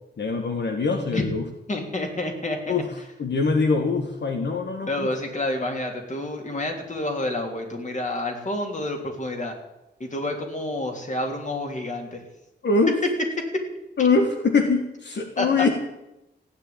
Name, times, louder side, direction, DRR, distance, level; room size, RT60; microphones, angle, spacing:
voice 1, 0.2-1.4 2.7-2.9 3.2-5.1 12.6-13.0 14.0-15.7, left 4 dB, 75° left, 4 dB, 1.6 m, -23 dB
voice 2, 1.7-2.7 4.9-9.5 10.0-12.2 13.4-13.5 15.4-15.7, left 2 dB, 40° left, 2 dB, 3.3 m, -29 dB
15.5 x 10.0 x 8.7 m, 0.91 s
wide cardioid pair, 115°, 18 cm